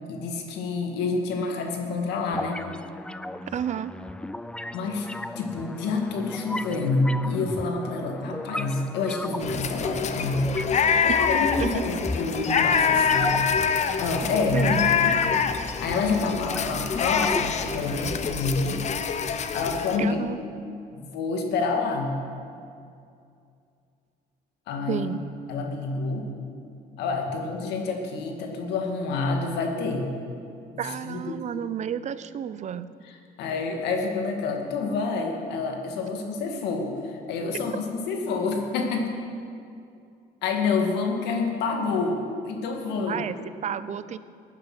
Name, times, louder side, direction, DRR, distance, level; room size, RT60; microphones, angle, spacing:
voice 1, 0.1-2.6 4.7-5.1 5.4-10.5 11.0-13.5 14.0-15.3 15.8-19.0 19.5-20.2 20.9-22.2 24.7-25.0 25.5-26.3 27.0-30.1 30.7-31.4 33.4-39.2 40.4-43.2, left 3 dB, 85° left, 3 dB, 2.1 m, -28 dB
sound 1, 2.3-18.3, left 1 dB, 5° left, 0.4 m, -36 dB
voice 2, 3.5-3.9 11.6-12.0 14.5-14.8 20.0-20.4 24.9-25.2 30.8-32.9 43.1-44.2, right 9 dB, 45° right, 14 dB, 0.6 m, -31 dB
sound 2, 9.4-20.0, left 6 dB, 45° left, 0.8 m, -25 dB
16.0 x 9.8 x 6.2 m, 2.4 s
cardioid pair, 110°, 17 cm